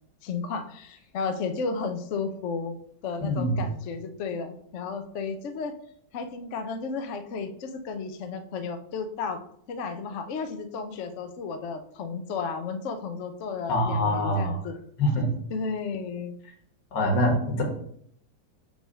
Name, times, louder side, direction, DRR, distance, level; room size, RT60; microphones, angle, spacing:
voice 1, 0.2-2.7 3.0-5.8 6.1-9.4 9.7-14.8 15.5-16.3, left 5 dB, 60° left, 8 dB, 0.8 m, -33 dB
voice 2, 3.2-3.5 13.7-14.6 15.0-15.3 16.9-17.6, equal, 80° left, 1 dB, 2.1 m, -24 dB
6.0 x 3.5 x 5.5 m, 0.66 s
omnidirectional pair, 1.9 m